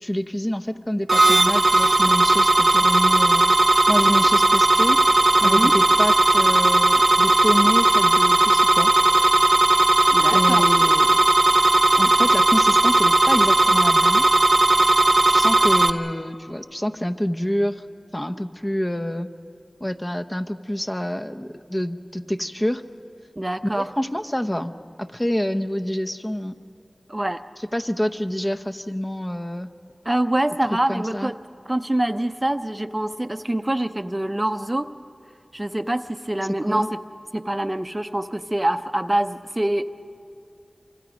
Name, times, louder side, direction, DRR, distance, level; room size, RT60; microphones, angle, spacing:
voice 1, 0.0-3.5 3.9-5.0 5.4-8.9 10.3-11.2 12.0-14.3 15.3-17.8 18.1-19.3 19.8-22.8 23.8-24.7 25.0-26.5 27.6-29.7 30.9-31.3 36.6-36.9, equal, 20° left, 7 dB, 0.8 m, -27 dB
sound 1, 1.1-15.9, right 2 dB, 60° right, 0.9 m, -17 dB
voice 2, 5.4-5.7 10.1-10.7 23.4-23.9 27.1-27.4 30.0-31.4 31.7-34.9 35.5-37.0 37.3-39.9, right 1 dB, 25° right, 9 dB, 0.7 m, -25 dB
28.0 x 24.5 x 5.2 m, 2.5 s
wide cardioid pair, 40°, 0 cm